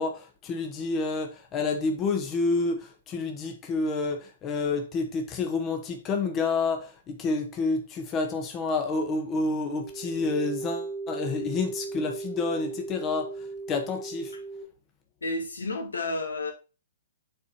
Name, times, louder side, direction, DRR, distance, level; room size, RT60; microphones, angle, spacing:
voice 1, 0.0-13.3 13.7-14.3, left 3 dB, 25° left, 1.4 m, -29 dB
sound 1, 9.7-14.6, right 3 dB, 85° right, 2.5 m, -37 dB
voice 2, 15.2-16.5, left 2 dB, 80° left, 1.9 m, -31 dB
8.2 x 4.3 x 4.3 m
figure-of-eight pair, 120°, 0 cm